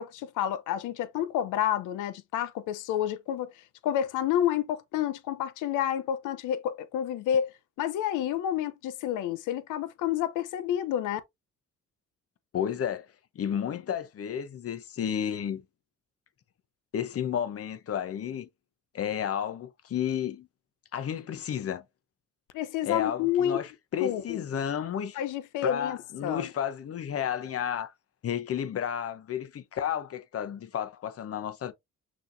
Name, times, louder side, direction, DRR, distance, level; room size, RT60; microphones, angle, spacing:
voice 1, 0.0-7.5 7.8-11.2 22.5-23.6 24.0-24.4 25.1-26.5, left 10 dB, 90° left, 0.7 m, -29 dB
voice 2, 12.5-13.1 13.3-15.6 16.9-18.5 18.9-20.5 20.9-21.8 22.8-25.2 25.6-27.9 28.2-31.7, left 9 dB, 50° left, 0.8 m, -32 dB
6.1 x 2.9 x 2.6 m
cardioid pair, 90°, 30 cm